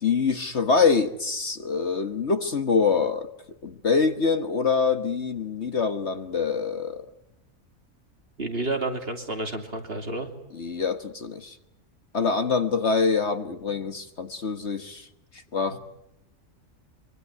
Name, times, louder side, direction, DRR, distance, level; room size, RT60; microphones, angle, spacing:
voice 1, 0.0-3.3 3.6-7.0 10.5-11.5 12.1-15.1 15.5-15.8, left 5 dB, 50° left, 1.6 m, -25 dB
voice 2, 8.4-10.3, right 2 dB, 40° right, 3.0 m, -30 dB
25.0 x 24.0 x 9.6 m
omnidirectional pair, 1.6 m